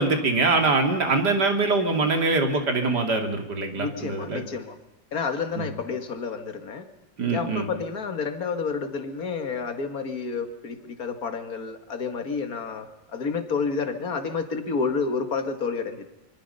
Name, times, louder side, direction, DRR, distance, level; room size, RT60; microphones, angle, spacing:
voice 1, 0.0-4.4 5.6-5.7 7.2-7.7, right 3 dB, 60° right, 5 dB, 3.3 m, -23 dB
voice 2, 3.7-4.8 5.1-6.8 7.3-16.1, left 5 dB, 50° left, 7 dB, 2.4 m, -30 dB
25.5 x 25.0 x 5.6 m, 0.92 s
omnidirectional pair, 2.0 m